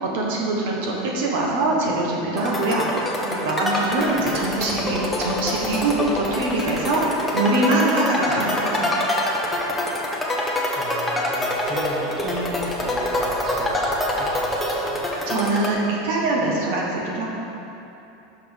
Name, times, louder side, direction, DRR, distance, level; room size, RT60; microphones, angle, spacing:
voice 1, 0.0-8.9 15.3-17.3, right 2 dB, 70° right, -2 dB, 1.2 m, -23 dB
sound 1, 2.4-15.7, left 1 dB, 10° left, 0.9 m, -25 dB
voice 2, 10.7-15.0, right 1 dB, 35° right, -3 dB, 1.1 m, -34 dB
5.6 x 5.3 x 5.2 m, 2.8 s
supercardioid pair, 130°, 0 cm